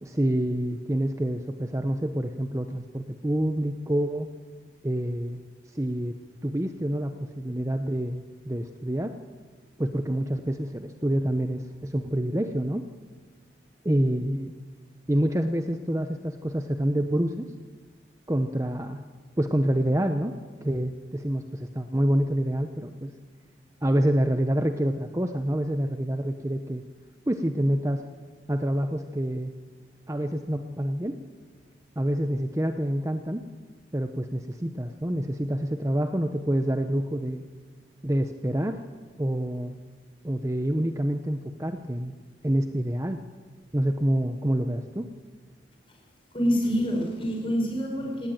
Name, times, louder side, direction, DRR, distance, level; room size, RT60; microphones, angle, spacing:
voice 1, 0.0-4.3 4.8-5.4 5.7-6.1 6.4-9.1 9.8-12.9 13.8-14.5 15.1-17.5 18.3-19.0 19.4-23.1 23.8-26.8 27.3-28.0 28.5-29.5 30.1-31.2 32.0-33.4 33.9-37.4 38.0-38.8 39.2-39.8 40.2-42.1 42.4-43.2 43.7-45.1, right 1 dB, 15° right, 7 dB, 0.8 m, -27 dB
voice 2, 46.3-48.3, equal, 30° left, 1 dB, 5.3 m, -26 dB
18.0 x 17.5 x 9.0 m, 1.4 s
head